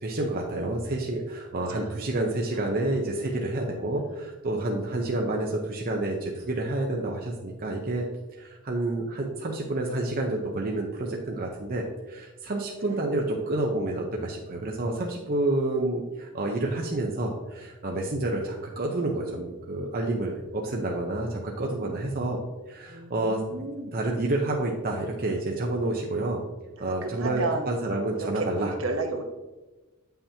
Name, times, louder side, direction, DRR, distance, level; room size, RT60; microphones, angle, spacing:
voice 1, 0.0-8.0 8.4-22.4 22.7-23.4 23.9-26.4 26.8-28.7, right 2 dB, 45° right, 0 dB, 0.7 m, -29 dB
voice 2, 22.8-24.0 26.8-27.7 28.2-29.2, right 3 dB, 65° right, 3 dB, 1.0 m, -33 dB
8.6 x 5.7 x 2.8 m, 1.2 s
head